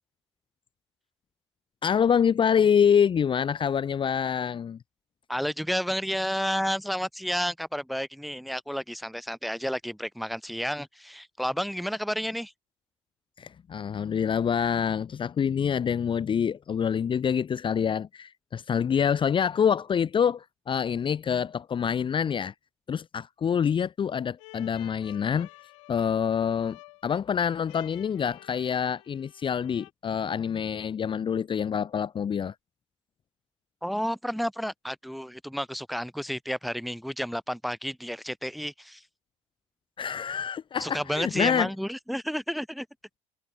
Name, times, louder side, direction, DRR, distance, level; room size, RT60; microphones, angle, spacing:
voice 1, 1.8-4.8 13.4-22.5 22.9-25.5 25.9-32.5 40.0-41.7, left 7 dB, 30° left, 0.9 m, -26 dB
voice 2, 5.3-12.5 33.8-39.0 40.8-42.9, equal, ahead, 1.4 m, -31 dB
sound 1, 24.4-29.9, left 22 dB, 75° left, 7.9 m, -52 dB
hypercardioid pair, 70°, 16 cm